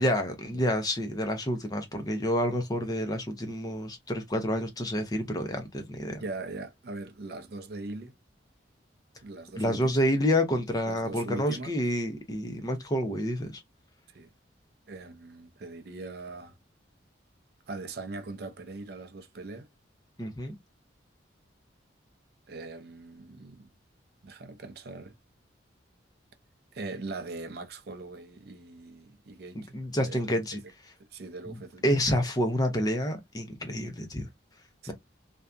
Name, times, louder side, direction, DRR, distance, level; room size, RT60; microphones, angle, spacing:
voice 1, 0.0-6.2 9.6-13.6 20.2-20.5 29.5-30.6 31.5-31.6 31.8-34.3 34.9-35.0, equal, 20° left, 0.5 m, -28 dB
voice 2, 6.2-8.1 9.2-10.0 10.9-11.7 14.1-14.3 14.9-16.6 17.7-19.7 22.5-23.7 24.2-25.1 26.7-29.8 30.0-30.3 31.1-32.2 34.8-34.9, right 3 dB, 55° right, 0.4 m, -41 dB
2.6 x 2.2 x 2.3 m
head